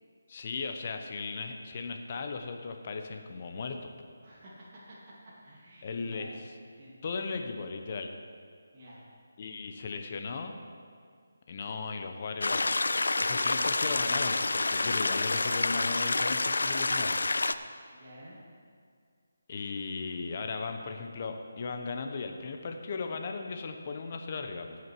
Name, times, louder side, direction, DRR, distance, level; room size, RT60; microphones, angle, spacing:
voice 1, 0.3-3.9 5.8-6.3 7.0-8.1 9.4-10.5 11.5-12.8 13.2-17.2 19.5-24.8, left 4 dB, 35° left, 5 dB, 0.9 m, -37 dB
voice 2, 4.2-5.1 5.4-6.4 6.8-7.0 8.7-9.0 17.9-18.4, equal, 30° right, -8 dB, 2.5 m, -51 dB
sound 1, 12.4-17.5, left 3 dB, 80° left, 0.5 m, -28 dB
16.5 x 6.4 x 4.6 m, 2.1 s
figure-of-eight pair, 165°, 0 cm